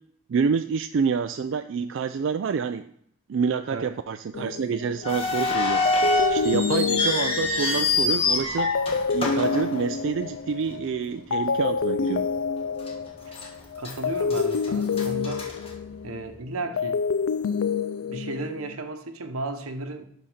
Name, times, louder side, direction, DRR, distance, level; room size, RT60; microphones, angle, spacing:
voice 1, 0.3-2.9 3.3-5.9 6.3-8.7 9.1-12.3, right 5 dB, 60° right, 0.3 m, -27 dB
sound 1, 4.3-5.3 5.9-11.0 11.3-16.3 16.6-18.8, left 5 dB, 65° left, 0.4 m, -28 dB
sound 2, 5.0-10.4 10.7-10.8 11.5-11.7 12.2-12.3 12.9-13.5 13.8-16.3, left 3 dB, 25° left, 1.5 m, -26 dB
voice 2, 13.8-15.5 16.0-17.0 18.0-20.0, right 2 dB, 85° right, 0.9 m, -34 dB
11.0 x 4.1 x 5.0 m
head